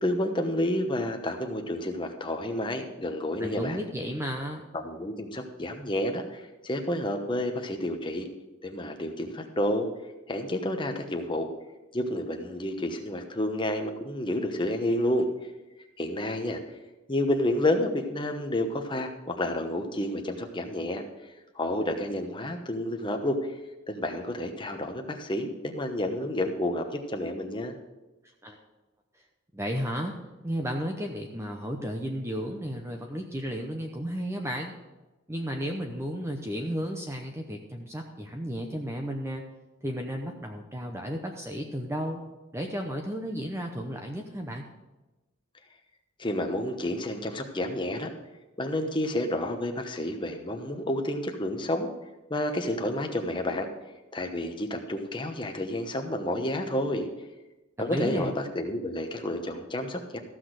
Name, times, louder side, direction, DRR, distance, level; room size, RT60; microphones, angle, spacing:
voice 1, 0.0-3.8 4.7-8.3 8.6-9.9 10.3-11.5 11.9-15.3 16.0-16.6 17.1-21.0 21.5-23.5 23.9-27.7 46.2-48.1 48.6-51.9 52.3-53.7 54.1-57.1 57.8-60.2, left 1 dB, 20° left, 4 dB, 1.0 m, -30 dB
voice 2, 3.4-4.6 28.4-28.6 29.5-30.2 30.4-34.7 35.3-39.4 39.8-42.2 42.5-44.7 57.8-58.3, equal, 10° right, 2 dB, 0.8 m, -33 dB
14.5 x 6.2 x 6.5 m, 1.1 s
head